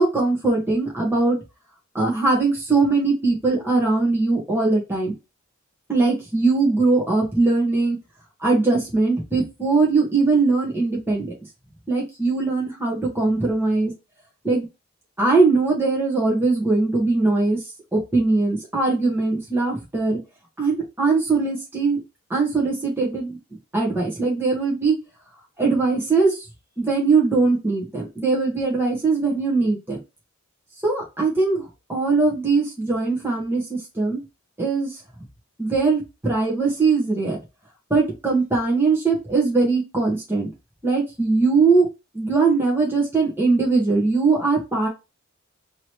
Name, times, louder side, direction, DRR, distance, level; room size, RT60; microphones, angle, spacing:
voice 1, 0.0-1.4 1.9-5.1 5.9-8.0 8.4-11.3 11.9-13.9 14.4-14.7 15.2-17.6 17.9-20.2 20.6-22.0 22.3-23.4 23.7-24.9 25.6-26.4 26.8-30.0 30.8-34.2 34.6-34.9 35.6-37.4 37.9-40.5 40.8-41.9 42.1-44.9, right 3 dB, 10° right, -3 dB, 1.4 m, -21 dB
3.9 x 3.1 x 3.0 m, 0.26 s
head